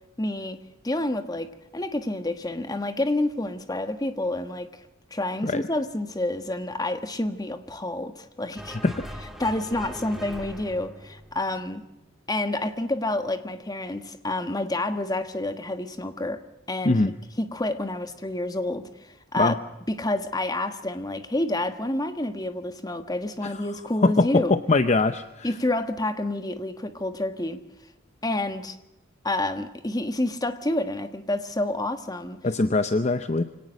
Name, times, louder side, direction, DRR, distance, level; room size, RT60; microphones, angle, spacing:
voice 1, 0.2-0.6 0.8-4.7 5.1-8.8 9.4-11.8 12.3-16.4 16.7-17.0 17.4-19.6 19.9-24.5 25.4-27.6 28.2-28.8 29.2-32.4, left 1 dB, 20° left, 9 dB, 1.4 m, -28 dB
sound 1, 8.6-12.1, equal, ahead, 1.8 m, -41 dB
voice 2, 24.0-25.5 32.4-33.4, left 3 dB, 35° left, 11 dB, 0.7 m, -22 dB
24.5 x 18.0 x 6.4 m, 0.94 s
head